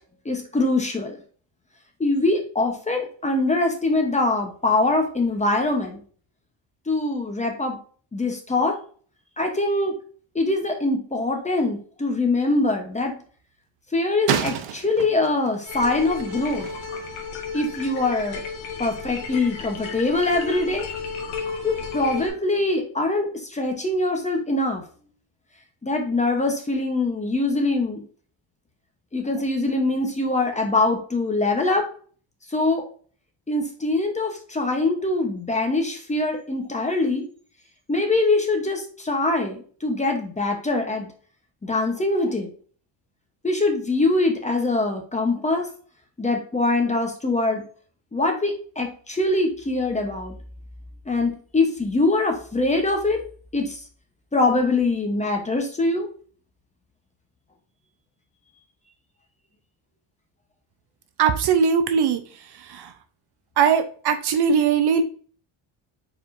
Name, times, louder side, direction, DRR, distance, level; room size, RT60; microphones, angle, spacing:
voice 1, 0.2-1.2 2.0-6.0 6.9-7.8 8.1-8.8 9.4-9.9 10.3-13.2 13.9-16.7 17.5-18.4 18.8-20.9 21.6-24.8 25.8-28.0 29.1-31.8 32.5-32.8 33.5-37.3 37.9-41.1 41.6-42.5 43.4-45.7 46.2-47.6 48.1-50.4 51.1-53.2 53.5-53.8 54.3-56.1, left 2 dB, 15° left, 3 dB, 0.8 m, -23 dB
sound 1, 12.6-12.7 14.3-17.1, right 9 dB, 90° right, 0.8 m, -30 dB
sound 2, 15.6-22.3, left 5 dB, 75° left, 1.4 m, -33 dB
voice 2, 61.2-62.2 62.7-62.9 63.6-65.0, right 6 dB, 55° right, 9 dB, 0.6 m, -20 dB
4.9 x 4.4 x 2.5 m, 0.43 s
cardioid pair, 155°, 49 cm